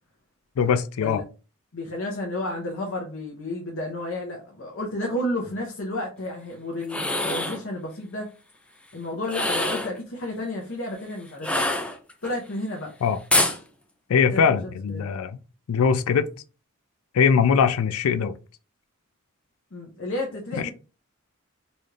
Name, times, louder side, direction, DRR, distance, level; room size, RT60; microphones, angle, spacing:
voice 1, 0.6-1.2 13.0-13.2 14.1-15.4 15.7-16.3 17.1-18.4 20.6-20.7, left 6 dB, 80° left, 0.4 m, -21 dB
voice 2, 1.7-8.3 8.9-11.6 12.2-12.9 14.3-15.0 19.7-20.7, left 1 dB, 60° left, 0.9 m, -31 dB
sound 1, 6.8-7.6 9.2-10.0 11.4-12.3 13.3-13.6, left 1 dB, 5° left, 0.4 m, -25 dB
4.0 x 2.4 x 3.2 m
head